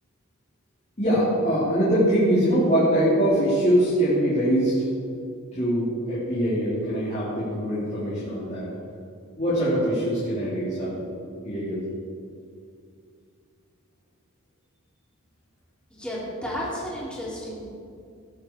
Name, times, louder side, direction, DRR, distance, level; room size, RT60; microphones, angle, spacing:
voice 1, 1.0-4.8 5.5-8.7 9.4-11.0 11.4-11.8, equal, 30° left, -10 dB, 4.0 m, -23 dB
voice 2, 16.0-17.6, equal, 5° left, -7 dB, 4.5 m, -32 dB
18.5 x 11.0 x 5.0 m, 2.5 s
head